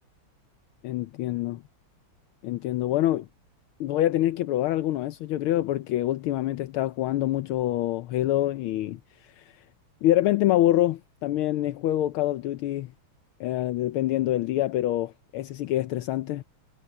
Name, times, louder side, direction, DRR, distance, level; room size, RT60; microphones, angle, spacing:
voice 1, 0.8-1.6 2.4-3.3 3.8-9.0 9.4-9.5 10.0-12.9 13.4-16.4, left 14 dB, 80° left, 1.6 m, -26 dB
omnidirectional pair, 2.4 m